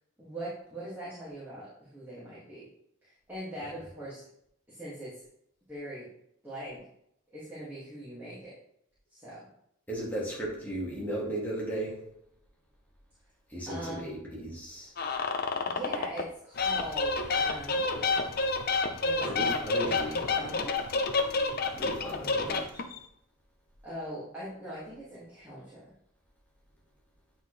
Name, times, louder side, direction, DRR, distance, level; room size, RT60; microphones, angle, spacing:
voice 1, 0.2-2.7 3.0-4.2 4.7-5.2 5.7-6.1 6.4-6.8 7.3-8.6 9.1-9.4 13.7-14.1 15.6-18.3 19.0-20.7 23.8-25.8, right 1 dB, 10° right, -10 dB, 2.2 m, -41 dB
voice 2, 9.9-12.0 13.5-14.9 19.2-20.5 21.8-22.6, right 1 dB, 10° left, -5 dB, 1.9 m, -35 dB
sound 1, 15.0-16.3 16.6-23.0, left 3 dB, 50° left, 0.6 m, -29 dB
9.0 x 4.3 x 3.3 m, 0.75 s
head